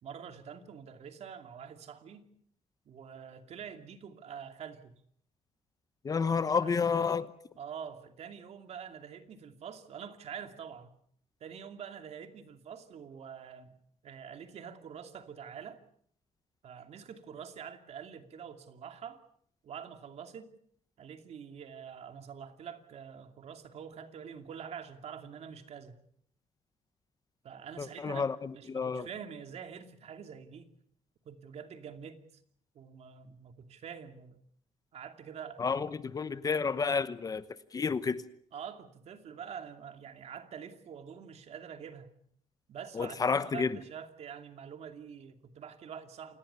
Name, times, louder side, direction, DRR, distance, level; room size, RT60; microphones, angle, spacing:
voice 1, 0.0-2.3 2.9-5.0 6.6-7.0 7.5-11.0 11.4-15.8 16.6-19.2 19.6-20.5 21.0-25.9 27.4-30.7 31.2-32.2 32.7-34.4 34.9-35.6 38.5-42.1 42.7-46.4, right 7 dB, 60° right, 2.7 m, -46 dB
voice 2, 6.0-7.3 27.8-28.3 28.7-29.0 35.6-37.4 37.7-38.2 43.0-43.7, left 5 dB, 30° left, 1.0 m, -30 dB
28.5 x 19.0 x 7.0 m
cardioid pair, 155°, 12 cm